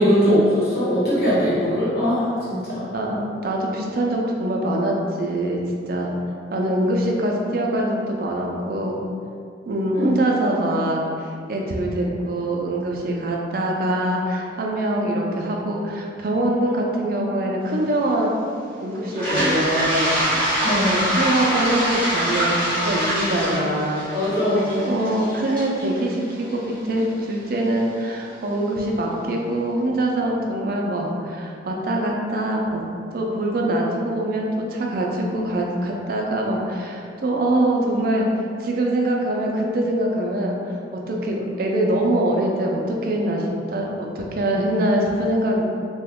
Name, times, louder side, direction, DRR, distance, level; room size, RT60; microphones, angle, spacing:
voice 1, 0.0-2.9 9.9-10.1 20.6-21.1 24.1-25.0, equal, 55° left, -11 dB, 1.1 m, -21 dB
voice 2, 2.9-5.6 5.9-6.1 6.5-9.0 9.7-18.3 18.8-32.8 33.1-38.3 38.6-45.6, right 1 dB, 50° right, -1 dB, 0.4 m, -24 dB
Toilet flush, 19.1-27.0, equal, 5° left, 0.8 m, -24 dB
2.9 x 2.2 x 3.5 m, 2.4 s
head